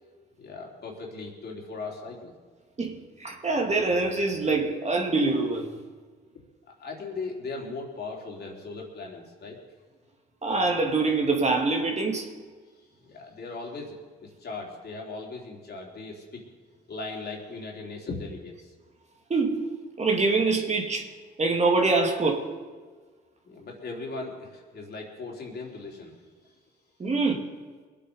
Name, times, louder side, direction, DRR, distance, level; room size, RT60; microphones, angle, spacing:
voice 1, 0.4-2.3 6.3-9.6 12.7-16.4 16.9-18.7 23.5-26.1 26.4-26.5, left 3 dB, 50° left, -1 dB, 3.8 m, -38 dB
voice 2, 2.8-5.7 10.4-12.3 19.3-19.7 20.0-21.1 21.4-22.5 27.0-27.5, right 3 dB, 35° right, 2 dB, 2.4 m, -25 dB
21.5 x 8.5 x 5.5 m, 1.5 s
supercardioid pair, 65°, 21 cm